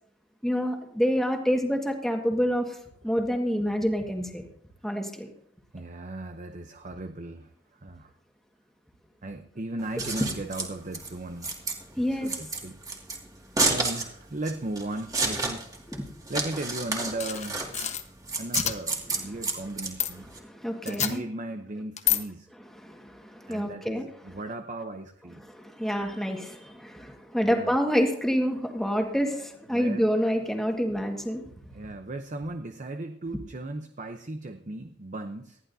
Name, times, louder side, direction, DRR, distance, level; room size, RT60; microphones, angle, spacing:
voice 1, 0.4-2.7 3.0-4.4 4.8-5.3 10.1-10.2 12.0-12.3 16.0-16.1 19.3-19.4 20.4-21.2 22.8-24.1 25.5-31.4, equal, ahead, 2 dB, 1.7 m, -27 dB
voice 2, 5.7-8.1 9.2-11.5 12.1-12.8 13.6-15.7 16.3-17.7 18.4-20.3 20.8-22.5 23.5-25.4 27.4-27.7 29.7-30.1 31.7-35.6, right 2 dB, 40° right, 7 dB, 0.8 m, -36 dB
Scissors, 9.8-20.4, right 3 dB, 20° right, 2.1 m, -31 dB
sound 1, 17.2-18.0 18.5-18.7 20.0-20.1 20.9-21.1 22.0-22.2, left 10 dB, 40° left, 1.1 m, -27 dB
19.5 x 14.0 x 2.7 m, 0.70 s
head